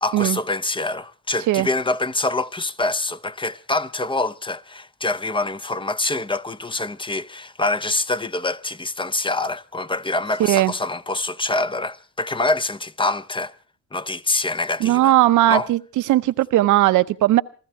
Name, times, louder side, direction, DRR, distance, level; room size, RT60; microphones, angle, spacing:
voice 1, 0.0-13.5 13.9-15.1 15.5-15.7, left 2 dB, 15° left, 0.7 m, -25 dB
voice 2, 10.4-10.7 14.8-15.8 16.1-17.4, right 15 dB, 80° right, 0.8 m, -17 dB
27.0 x 14.5 x 3.4 m
cardioid pair, 90°, 30 cm